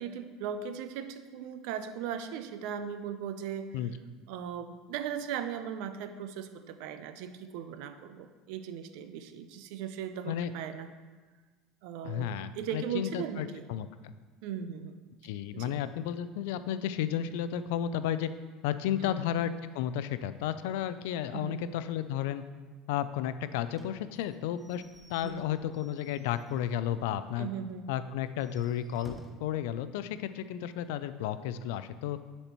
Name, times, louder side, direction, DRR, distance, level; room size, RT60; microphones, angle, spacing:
voice 1, 0.0-3.8 4.3-10.9 11.8-12.3 12.6-13.7 14.4-15.0 15.5-15.7 19.0-19.2 21.3-21.6 25.2-25.4 27.4-27.9, right 8 dB, 65° right, 10 dB, 0.4 m, -38 dB
voice 2, 12.0-14.1 15.2-18.3 18.6-22.4 22.9-24.8 25.1-27.5 27.9-32.2, left 10 dB, 80° left, 12 dB, 0.3 m, -33 dB
Slam / Squeak / Wood, 23.7-26.9 27.3-27.4 27.7-27.8 28.3-29.6, equal, ahead, 0.4 m, -54 dB
9.9 x 4.2 x 2.9 m, 1.4 s
cardioid pair, 155°, 0 cm